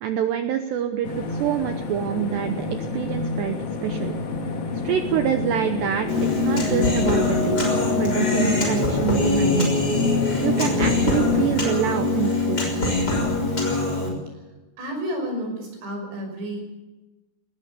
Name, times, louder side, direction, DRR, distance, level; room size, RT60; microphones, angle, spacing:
voice 1, 0.0-2.7 2.9-3.6 3.8-4.1 4.8-9.7 10.4-12.6, right 9 dB, 75° right, 7 dB, 2.6 m, -26 dB
sound 1, 1.0-11.6, left 3 dB, 55° left, 1.6 m, -29 dB
Human voice, 6.1-14.1, left 3 dB, 20° left, 6.0 m, -22 dB
voice 2, 14.8-16.6, equal, 55° right, 3 dB, 8.0 m, -30 dB
20.5 x 18.5 x 6.9 m, 1.1 s
omnidirectional pair, 5.9 m